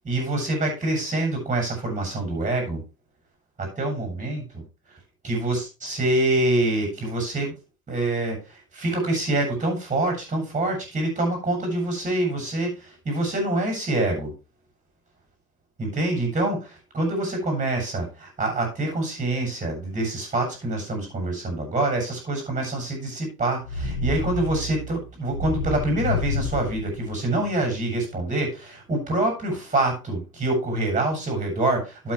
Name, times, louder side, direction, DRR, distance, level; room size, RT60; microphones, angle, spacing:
voice 1, 0.0-2.8 3.6-4.6 5.2-7.5 7.9-14.3 15.8-32.1, right 2 dB, 15° right, 3 dB, 7.7 m, -26 dB
sound 1, 23.6-27.7, left 3 dB, 50° left, 3.4 m, -30 dB
12.0 x 8.5 x 3.3 m, 0.28 s
figure-of-eight pair, 90°, 45 cm